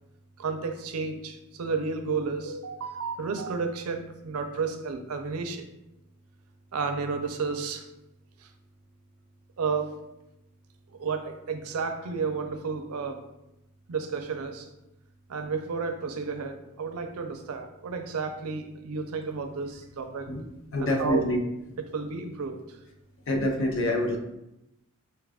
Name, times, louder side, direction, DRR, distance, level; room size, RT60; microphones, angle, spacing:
voice 1, 0.4-5.7 6.7-7.9 8.4-8.5 9.6-9.9 10.9-13.2 13.9-14.7 15.3-20.3 20.8-21.2 21.8-22.8, right 5 dB, 85° right, 7 dB, 0.5 m, -32 dB
voice 2, 20.7-21.4 23.3-24.2, left 1 dB, 65° left, 3 dB, 0.6 m, -26 dB
4.4 x 2.4 x 3.4 m, 0.89 s
head